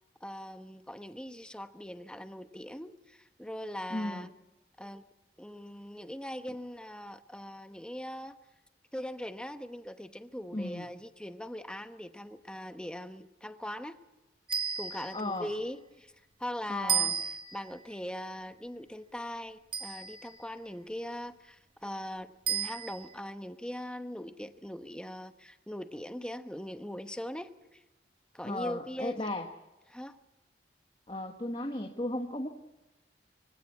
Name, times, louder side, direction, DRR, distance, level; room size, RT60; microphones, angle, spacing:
voice 1, 0.2-4.3 4.8-5.1 5.4-8.4 8.9-14.0 14.8-16.1 16.4-27.8 28.3-29.3 29.9-30.2, equal, 5° left, 9 dB, 1.0 m, -41 dB
voice 2, 3.9-4.3 10.5-10.9 15.1-15.5 16.7-17.1 28.4-29.5 31.1-32.5, left 1 dB, 30° left, 4 dB, 1.4 m, -35 dB
sound 1, 14.5-15.4 16.9-17.7 19.7-20.4 22.5-23.1, right 7 dB, 30° right, 1.3 m, -33 dB
25.0 x 17.0 x 8.4 m, 1.0 s
head